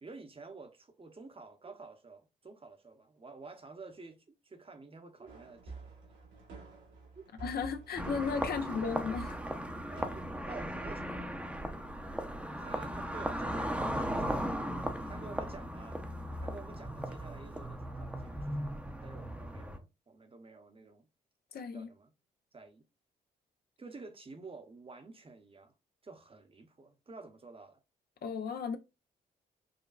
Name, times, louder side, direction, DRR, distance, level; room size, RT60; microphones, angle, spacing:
voice 1, 0.0-5.9 7.2-7.3 8.4-8.6 9.9-11.4 12.6-14.5 15.0-16.0 16.4-21.1 21.7-22.1 22.5-22.9 23.8-25.7 26.0-27.8, right 3 dB, 30° right, 0.8 m, -50 dB
sound 1, 5.3-10.3, right 4 dB, 85° right, 1.7 m, -49 dB
voice 2, 7.4-9.4 21.5-21.9 28.2-28.8, left 5 dB, 60° left, 0.6 m, -35 dB
sound 2, 8.0-19.8, equal, 5° right, 0.7 m, -37 dB
5.0 x 2.2 x 2.4 m
supercardioid pair, 55°, 19 cm